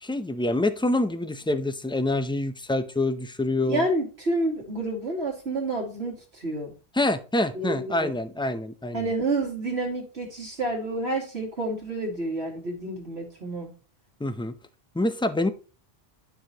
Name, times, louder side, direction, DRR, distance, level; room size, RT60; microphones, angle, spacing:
voice 1, 0.0-3.8 7.0-9.1 14.2-14.5 14.9-15.5, left 2 dB, 5° left, 10 dB, 0.4 m, -26 dB
voice 2, 3.7-6.7 7.5-8.1 8.9-13.7, right 2 dB, 85° right, 0 dB, 2.6 m, -29 dB
12.5 x 4.8 x 2.9 m, 0.36 s
omnidirectional pair, 1.1 m